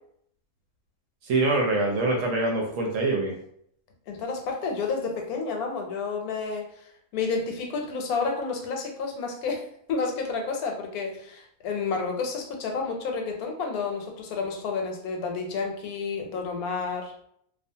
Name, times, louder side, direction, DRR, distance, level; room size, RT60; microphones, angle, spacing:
voice 1, 1.2-3.4, right 2 dB, 70° right, 1 dB, 0.9 m, -24 dB
voice 2, 4.1-6.7 7.1-17.1, left 4 dB, 80° left, 2 dB, 1.1 m, -30 dB
2.4 x 2.3 x 2.6 m, 0.68 s
omnidirectional pair, 1.6 m